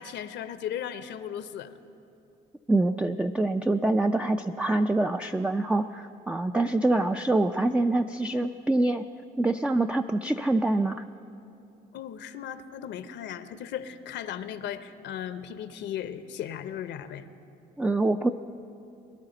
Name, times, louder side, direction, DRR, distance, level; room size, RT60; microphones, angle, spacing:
voice 1, 0.0-1.7 6.5-6.7 11.9-17.3, left 9 dB, 65° left, 12 dB, 0.7 m, -36 dB
voice 2, 2.7-9.1 9.4-11.0 17.8-18.3, right 2 dB, 5° right, 6 dB, 0.3 m, -25 dB
22.0 x 11.5 x 3.9 m, 2.8 s
supercardioid pair, 80°, 19 cm